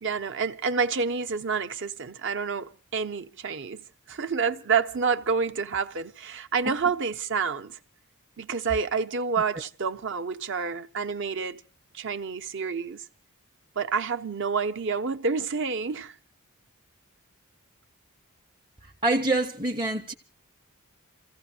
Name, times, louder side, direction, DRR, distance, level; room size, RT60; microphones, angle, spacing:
voice 1, 0.0-7.8 8.4-11.6 11.9-13.0 13.8-16.1, right 5 dB, 55° right, 0.8 m, -28 dB
voice 2, 18.8-20.1, right 2 dB, 20° right, 0.7 m, -26 dB
29.0 x 15.5 x 2.8 m
head